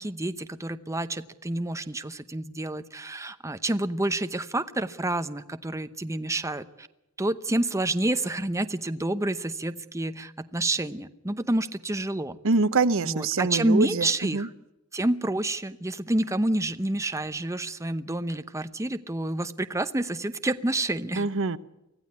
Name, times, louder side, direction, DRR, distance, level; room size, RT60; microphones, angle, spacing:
voice 1, 0.0-6.9 7.2-12.4 13.0-14.5 14.9-21.3, right 1 dB, 15° right, 10 dB, 0.8 m, -28 dB
voice 2, 12.4-14.5 21.2-21.6, right 3 dB, 65° right, 16 dB, 0.9 m, -25 dB
25.0 x 15.5 x 9.7 m, 0.94 s
head